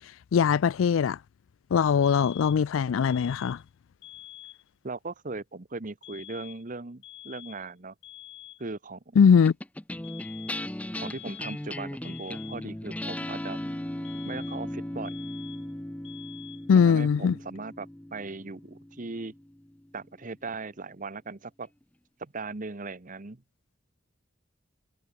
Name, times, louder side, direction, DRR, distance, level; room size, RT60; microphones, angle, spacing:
voice 1, 0.3-1.2 1.7-3.6 9.2-9.5 16.7-17.4, left 6 dB, 85° left, 0.4 m, -21 dB
sound 1, 2.0-2.7 3.0-3.7 4.0-4.7 6.0-6.7 7.0-7.7 8.0-8.7 10.0-10.7 11.0-11.7 12.0-12.7 14.0-14.7 15.0-15.7 16.0-16.7, left 14 dB, 65° left, 4.4 m, -47 dB
voice 2, 4.8-7.9 8.6-9.2 11.0-13.6 14.2-15.1 16.7-19.3 19.9-21.7 22.2-23.4, right 3 dB, 40° right, 1.0 m, -38 dB
sound 2, 9.4-20.0, left 1 dB, 5° left, 0.5 m, -37 dB
head